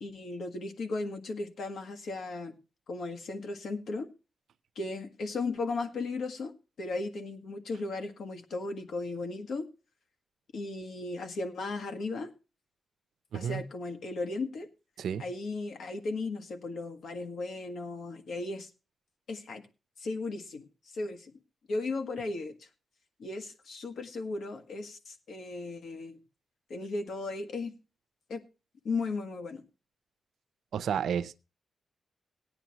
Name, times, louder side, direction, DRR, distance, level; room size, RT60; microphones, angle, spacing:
voice 1, 0.0-2.6 2.9-4.1 4.8-9.7 10.5-12.3 13.3-14.7 15.2-18.7 19.3-19.6 20.0-20.7 20.9-21.3 21.7-22.6 23.2-26.2 26.7-27.7 28.3-28.4 28.8-29.6, left 3 dB, 65° left, 1.7 m, -36 dB
voice 2, 13.3-13.6 15.0-15.2 30.7-31.4, right 8 dB, 75° right, 0.6 m, -31 dB
17.0 x 10.0 x 3.0 m
wide cardioid pair, 180°, 0 cm